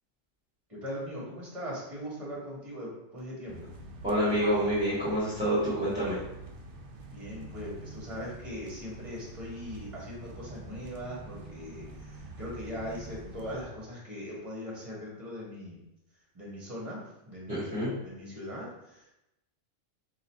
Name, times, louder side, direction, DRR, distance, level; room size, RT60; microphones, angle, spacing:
voice 1, 0.7-3.7 7.1-15.8 16.3-17.7 18.0-19.1, equal, 25° right, -5 dB, 1.5 m, -40 dB
sound 1, 3.5-13.6, right 2 dB, 55° right, 0.6 m, -45 dB
voice 2, 4.0-6.2 17.5-17.9, equal, 5° right, -13 dB, 1.5 m, -27 dB
3.9 x 2.9 x 4.4 m, 0.88 s
omnidirectional pair, 1.4 m